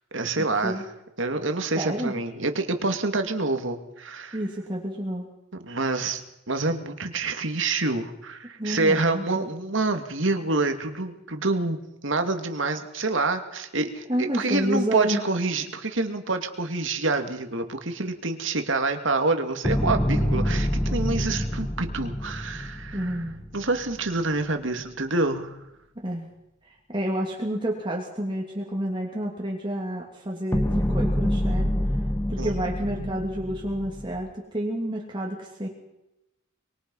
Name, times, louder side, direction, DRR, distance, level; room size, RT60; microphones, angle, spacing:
voice 1, 0.1-0.8 1.2-4.4 5.6-6.2 6.5-11.8 12.0-23.2 23.5-25.6 32.4-32.5 33.0-33.1, right 3 dB, 65° right, 6 dB, 2.5 m, -27 dB
voice 2, 1.8-2.1 4.3-5.3 8.6-9.5 14.1-15.2 22.9-23.4 26.0-26.3 26.6-31.7 32.3-35.7, right 1 dB, 25° right, -1 dB, 2.9 m, -29 dB
sound 1, 19.6-23.9 30.5-34.3, equal, 10° left, 1.6 m, -26 dB
24.5 x 22.5 x 5.6 m, 0.90 s
head